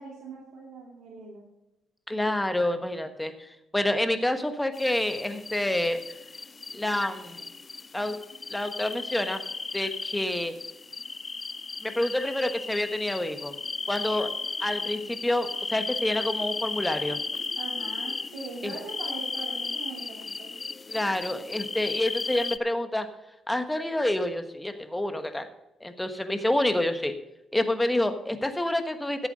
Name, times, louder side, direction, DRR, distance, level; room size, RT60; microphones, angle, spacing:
voice 1, 0.0-1.4 15.0-15.1 17.6-20.5, right 3 dB, 75° right, -4 dB, 2.9 m, -41 dB
voice 2, 2.1-6.0 6.7-7.4 7.9-8.2 8.5-9.4 9.7-10.6 11.8-13.5 13.9-14.3 14.6-17.2 18.6-18.7 20.9-23.1 23.5-25.5 25.8-27.1 27.5-29.3, left 1 dB, 10° left, 8 dB, 1.3 m, -28 dB
sound 1, 4.7-22.6, left 4 dB, 30° left, 0.4 m, -35 dB
14.0 x 8.1 x 5.1 m, 0.94 s
cardioid pair, 90°, 0 cm